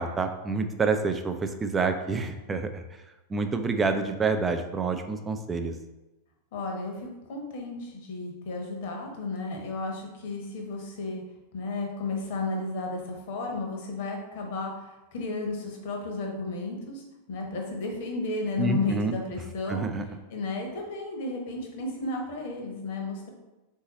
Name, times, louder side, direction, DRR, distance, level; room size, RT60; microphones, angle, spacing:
voice 1, 0.0-2.8 3.3-5.7 18.6-19.1 19.7-20.0, right 4 dB, 15° right, 7 dB, 0.4 m, -28 dB
voice 2, 6.5-11.2 11.5-19.8 20.3-23.3, left 3 dB, 50° left, 1 dB, 0.9 m, -33 dB
3.8 x 2.7 x 4.1 m, 1.0 s
figure-of-eight pair, 90°, 0 cm